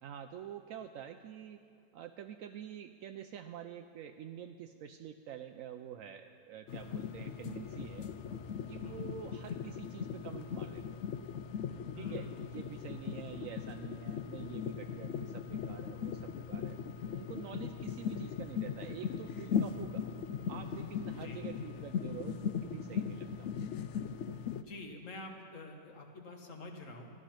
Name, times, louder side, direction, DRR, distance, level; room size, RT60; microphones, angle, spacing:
voice 1, 0.0-1.6 1.9-8.1 8.7-11.0 12.0-16.8 17.1-20.1 20.5-23.6, right 9 dB, 75° right, 6 dB, 0.7 m, -47 dB
sound 1, 6.7-24.6, left 7 dB, 90° left, 0.6 m, -39 dB
voice 2, 11.9-12.4 21.1-21.4 24.6-27.1, left 2 dB, 50° left, 3 dB, 1.5 m, -47 dB
14.0 x 11.0 x 5.8 m, 2.3 s
omnidirectional pair, 1.9 m